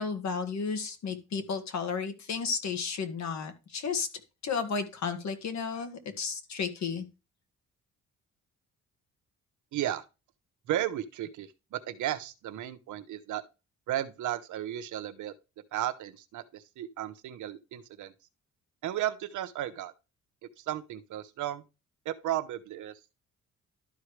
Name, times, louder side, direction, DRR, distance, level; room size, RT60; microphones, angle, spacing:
voice 1, 0.0-4.1 4.4-7.1, left 5 dB, 65° left, 1.8 m, -33 dB
voice 2, 9.7-10.0 10.7-13.4 13.9-15.3 15.7-18.1 18.8-19.9 20.6-21.6 22.0-23.0, right 12 dB, 75° right, 0.9 m, -34 dB
12.0 x 4.8 x 3.3 m
cardioid pair, 90°, 30 cm